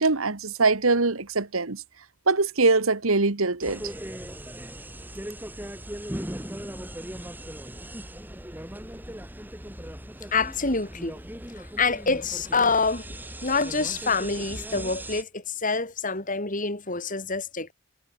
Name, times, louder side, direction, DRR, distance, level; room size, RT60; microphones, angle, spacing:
voice 1, 0.0-1.8 2.3-3.8, right 3 dB, 75° right, 1.6 m, -23 dB
sound 1, 3.6-15.2, right 1 dB, 10° right, 3.2 m, -38 dB
voice 2, 10.3-11.2 11.6-13.1 13.4-17.7, left 4 dB, 40° left, 4.1 m, -26 dB
head